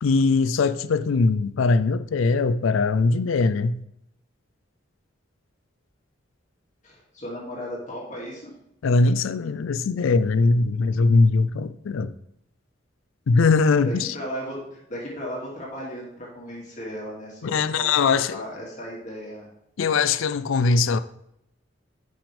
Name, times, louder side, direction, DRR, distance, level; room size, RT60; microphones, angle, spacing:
voice 1, 0.0-3.8 8.8-12.1 13.3-14.1 17.4-18.4 19.8-21.0, left 4 dB, 90° left, 0.4 m, -21 dB
voice 2, 6.8-8.5 13.8-19.5, equal, 40° left, 2.4 m, -35 dB
10.5 x 5.9 x 3.4 m
head